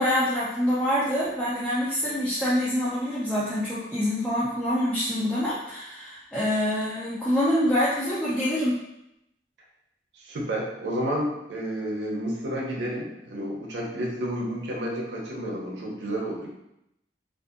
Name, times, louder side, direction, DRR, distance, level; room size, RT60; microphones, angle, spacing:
voice 1, 0.0-8.7, equal, 5° left, -10 dB, 0.4 m, -25 dB
voice 2, 10.1-16.5, equal, 85° right, -2 dB, 0.6 m, -31 dB
2.6 x 2.5 x 2.4 m, 0.84 s
head